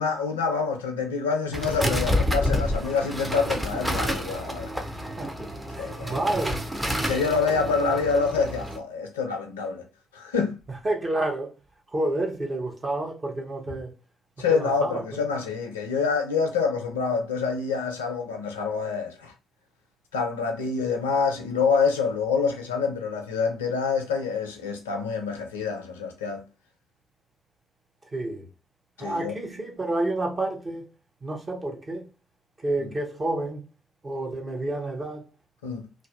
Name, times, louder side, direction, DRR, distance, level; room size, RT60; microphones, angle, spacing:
voice 1, 0.0-4.7 5.8-6.2 7.1-9.8 10.1-10.5 14.4-19.3 20.1-26.4 29.0-29.3 35.6-35.9, left 5 dB, 80° left, 0.4 m, -26 dB
sound 1, 1.5-8.8, left 1 dB, 10° right, 0.5 m, -29 dB
voice 2, 4.9-5.3 5.7-6.7 7.5-7.8 10.7-11.5 11.9-13.9 14.5-15.0 28.1-28.5 29.0-30.9 31.2-32.1 32.6-33.6 34.0-35.3, right 2 dB, 30° right, 0.8 m, -29 dB
2.4 x 2.1 x 2.4 m
figure-of-eight pair, 40°, 0 cm